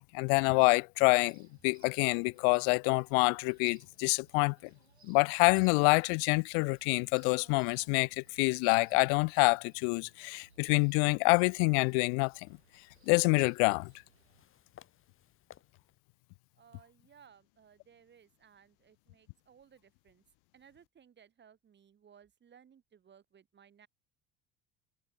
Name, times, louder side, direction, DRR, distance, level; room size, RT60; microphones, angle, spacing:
voice 1, 0.0-4.6 5.0-12.3 13.1-13.9, left 40 dB or more, 60° left, 0.5 m, -27 dB
sound 1, 1.3-14.4, right 5 dB, 85° right, 8.0 m, -66 dB
sound 2, 11.5-16.0, left 9 dB, 40° left, 4.2 m, -62 dB
voice 2, 16.5-20.2 20.5-23.9, right 8 dB, 35° right, 3.3 m, -61 dB
figure-of-eight pair, 65°, 31 cm